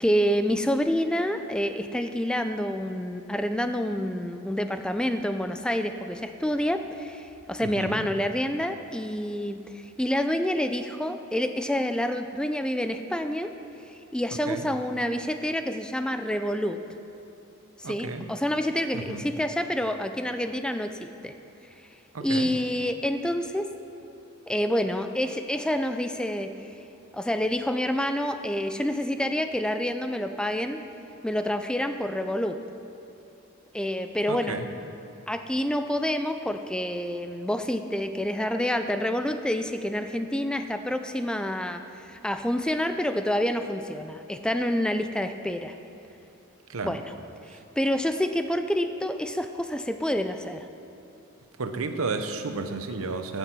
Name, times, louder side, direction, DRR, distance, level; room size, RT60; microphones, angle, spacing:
voice 1, 0.0-13.5 13.9-16.8 17.8-21.3 22.2-23.7 24.5-26.5 27.1-30.8 31.2-32.6 33.7-34.6 35.3-45.7 46.8-47.0 47.5-50.7, equal, 5° left, 8 dB, 0.4 m, -28 dB
voice 2, 7.6-8.1 14.5-14.7 17.8-18.3 18.9-19.3 22.1-22.5 34.3-34.7 46.7-47.0 47.5-47.6 51.6-53.4, right 3 dB, 85° right, 7 dB, 0.8 m, -33 dB
15.0 x 6.7 x 6.1 m, 2.7 s
head